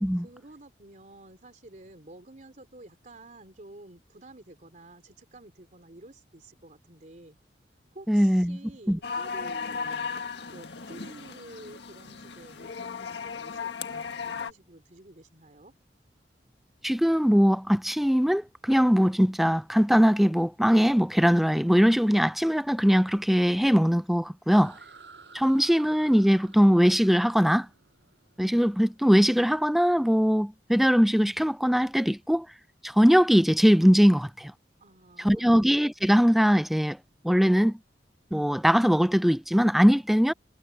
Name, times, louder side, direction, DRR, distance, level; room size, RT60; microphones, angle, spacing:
voice 1, 0.2-7.4 7.9-10.0 10.5-15.7 34.8-35.6, right 2 dB, 45° right, 3.5 m, -50 dB
voice 2, 8.1-8.6 8.9-9.0 16.8-24.8 25.3-27.7 28.4-32.5 32.8-34.5 35.2-37.0 37.2-37.8 38.3-40.3, equal, ahead, 0.4 m, -21 dB
sound 1, 9.0-14.5, left 5 dB, 75° left, 1.7 m, -36 dB
sound 2, 24.5-29.0, right 4 dB, 75° right, 7.5 m, -52 dB
head